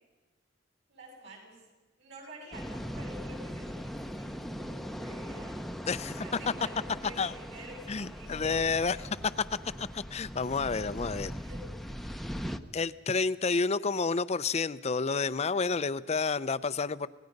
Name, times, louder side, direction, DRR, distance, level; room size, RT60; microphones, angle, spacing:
voice 1, 0.9-1.6 2.0-5.6 6.2-9.0 11.4-12.0, right 1 dB, 65° right, 0 dB, 7.6 m, -49 dB
sound 1, 2.5-12.6, equal, ahead, 0.8 m, -40 dB
voice 2, 5.9-6.2 7.2-7.3 7.9-9.1 9.8-11.3 12.7-17.1, left 4 dB, 35° left, 15 dB, 0.6 m, -30 dB
26.0 x 19.5 x 5.3 m, 1.2 s
head